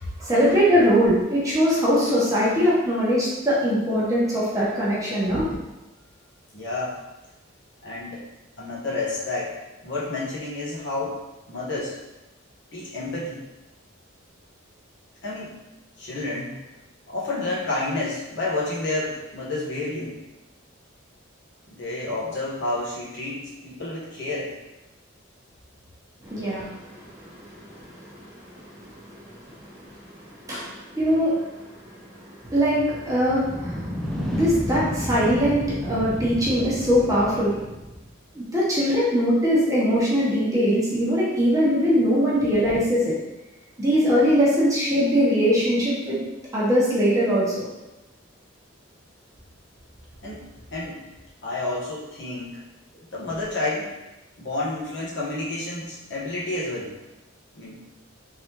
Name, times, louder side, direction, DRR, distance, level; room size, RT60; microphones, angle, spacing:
voice 1, 0.2-5.5 26.2-37.6 38.3-43.1 43.8-46.2 46.5-47.7, equal, 15° right, -7 dB, 1.0 m, -22 dB
voice 2, 6.5-7.0 7.8-8.2 8.6-9.5 9.8-12.0 12.7-13.4 15.2-15.5 16.0-16.6 17.1-20.2 21.7-24.5 50.2-51.0 51.4-52.6 53.1-54.0 54.4-56.9 57.5-57.8, left 2 dB, 60° left, -6 dB, 1.1 m, -30 dB
sound 1, 33.2-38.1, equal, ahead, 0.4 m, -31 dB
3.8 x 3.3 x 2.9 m, 1.0 s
head